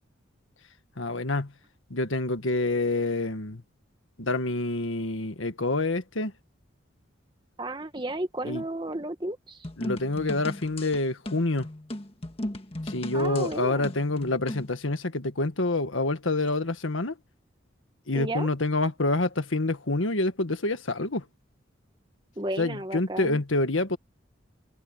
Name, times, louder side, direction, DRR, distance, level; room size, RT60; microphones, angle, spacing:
voice 1, 1.0-1.5 1.9-3.6 4.2-6.3 8.4-8.6 9.8-11.7 12.9-17.1 18.1-21.3 22.6-24.0, left 2 dB, 90° left, 1.7 m, -27 dB
voice 2, 7.6-9.6 13.1-13.9 18.1-18.5 22.4-23.4, right 1 dB, 25° right, 1.8 m, -33 dB
sound 1, 9.6-14.7, left 1 dB, 30° left, 1.6 m, -36 dB
head